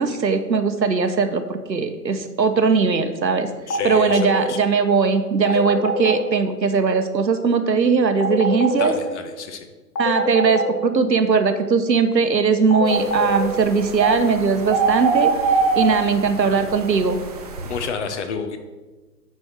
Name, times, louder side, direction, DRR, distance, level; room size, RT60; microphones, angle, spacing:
voice 1, 0.0-3.5 3.8-8.9 10.0-17.2, right 5 dB, 90° right, 8 dB, 0.9 m, -19 dB
sound 1, 3.7-4.5 5.4-6.2 8.2-9.0 9.9-10.7 12.7-13.5, left 2 dB, 75° left, 1.3 m, -23 dB
voice 2, 3.7-4.6 8.8-9.7 10.1-10.2 17.6-18.6, left 5 dB, 45° left, 7 dB, 0.9 m, -30 dB
sound 2, 12.9-17.9, right 4 dB, 25° right, 0.5 m, -24 dB
9.2 x 4.4 x 4.6 m, 1.3 s
figure-of-eight pair, 125°, 49 cm